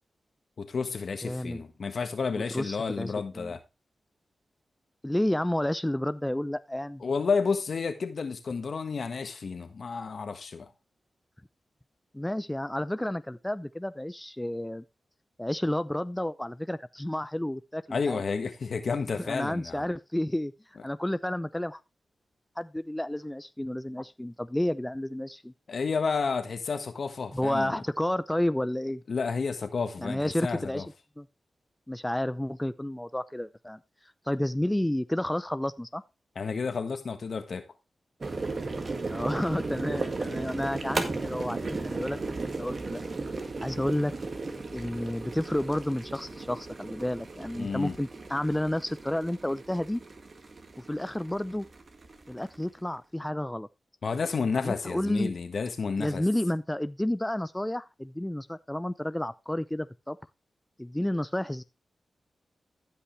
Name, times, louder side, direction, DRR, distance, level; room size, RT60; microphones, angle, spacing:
voice 1, 0.6-3.6 7.0-10.7 17.9-19.8 25.7-27.8 29.1-30.9 36.3-37.6 47.6-47.9 54.0-56.2, left 5 dB, 70° left, 1.4 m, -31 dB
voice 2, 1.2-1.6 2.3-3.5 5.0-7.0 12.1-14.8 15.4-18.2 19.2-20.5 20.8-21.8 22.6-25.5 27.3-29.0 30.0-30.9 31.2-31.3 31.9-33.8 34.3-36.0 39.1-43.0 43.6-44.1 44.7-50.0 50.8-51.7 52.3-53.7 54.6-55.3 56.0-60.2 60.8-61.6, left 1 dB, 10° left, 0.6 m, -31 dB
sound 1, 38.2-52.7, right 3 dB, 55° right, 1.9 m, -36 dB
15.5 x 5.5 x 3.2 m
cardioid pair, 45°, 0 cm